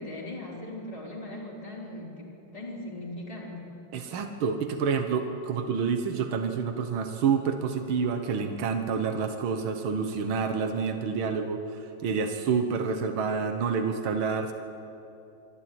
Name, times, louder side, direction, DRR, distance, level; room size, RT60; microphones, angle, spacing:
voice 1, 0.0-3.7, left 1 dB, 15° left, -5 dB, 4.2 m, -39 dB
voice 2, 3.9-14.5, right 5 dB, 75° right, 6 dB, 2.0 m, -28 dB
25.5 x 13.0 x 9.4 m, 2.7 s
omnidirectional pair, 2.3 m